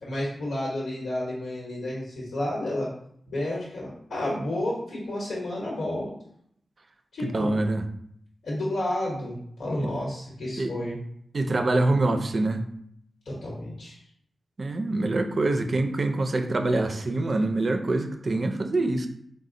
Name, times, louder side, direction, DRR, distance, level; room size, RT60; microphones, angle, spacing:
voice 1, 0.0-2.9 3.3-6.1 7.1-7.6 8.4-11.0 13.2-14.0, left 1 dB, 90° left, -5 dB, 1.1 m, -31 dB
voice 2, 7.2-7.8 10.6-10.7 11.3-12.6 14.6-19.1, right 2 dB, 45° right, 7 dB, 0.4 m, -25 dB
4.1 x 2.1 x 3.7 m, 0.68 s
wide cardioid pair, 110°, 0 cm